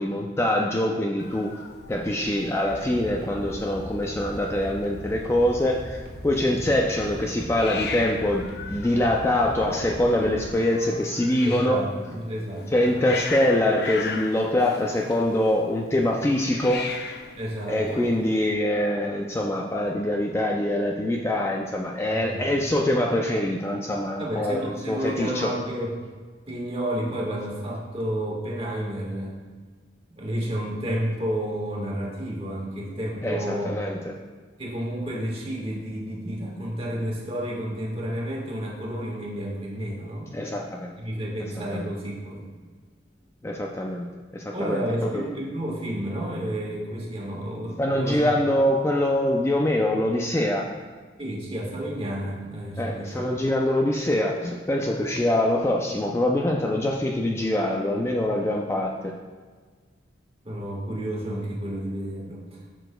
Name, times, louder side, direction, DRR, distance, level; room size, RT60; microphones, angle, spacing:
voice 1, 0.0-1.5 1.9-11.8 12.7-16.9 17.7-25.5 33.2-34.1 40.3-41.0 41.7-41.9 43.4-44.1 44.3-45.3 47.8-50.7 52.8-59.1, left 1 dB, 15° left, 0 dB, 0.4 m, -24 dB
Hiss, 1.2-18.5, left 4 dB, 60° left, 0.6 m, -39 dB
sound 1, 2.6-10.5, equal, 55° right, 1.4 m, -39 dB
voice 2, 11.4-12.9 17.4-18.1 22.1-22.5 24.2-25.9 26.5-29.3 30.2-33.7 34.6-40.3 41.0-42.5 44.5-48.2 51.2-53.2 60.4-62.7, right 1 dB, 30° right, -3 dB, 1.5 m, -31 dB
10.0 x 6.8 x 2.2 m, 1.5 s
head